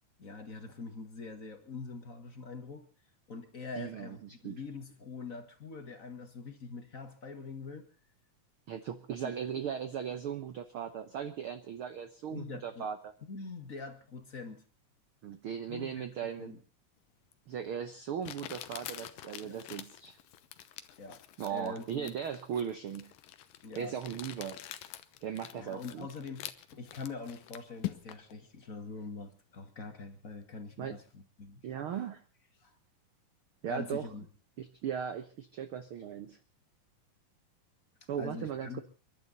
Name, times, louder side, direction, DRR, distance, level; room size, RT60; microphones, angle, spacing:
voice 1, 0.2-2.9 3.3-7.9 9.2-9.3 12.3-12.9 13.2-14.6 15.7-16.6 19.4-19.6 21.0-21.2 21.5-22.1 23.6-24.2 25.5-31.7 32.6-32.7 33.7-34.2 38.2-38.8, left 4 dB, 30° left, 7 dB, 1.7 m, -44 dB
voice 2, 3.8-4.6 8.7-13.1 15.2-16.5 17.5-20.2 21.4-23.1 23.8-24.6 25.2-26.1 30.8-31.0 31.6-32.2 33.6-34.1 34.6-36.4 38.1-38.8, right 8 dB, 70° right, 9 dB, 1.3 m, -38 dB
Crumpling crinkling, 17.3-17.4 18.2-28.3, left 14 dB, 90° left, 2.7 m, -45 dB
30.0 x 11.5 x 4.0 m, 0.36 s
omnidirectional pair, 3.8 m